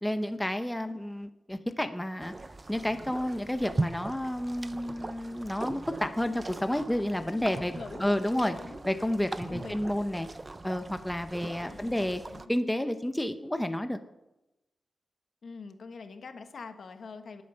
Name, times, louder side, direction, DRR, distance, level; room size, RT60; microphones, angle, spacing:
voice 1, 0.0-2.3 2.7-7.7 8.0-8.5 8.8-10.3 10.6-12.2 12.5-14.0, left 1 dB, 5° left, 8 dB, 0.7 m, -30 dB
sound 1, 2.2-12.4, right 2 dB, 25° right, 0.6 m, -39 dB
voice 2, 7.1-8.9 9.5-9.8 11.6-12.5 15.4-17.4, left 4 dB, 60° left, 7 dB, 1.3 m, -45 dB
19.0 x 8.6 x 5.6 m, 0.95 s
wide cardioid pair, 130°, 0 cm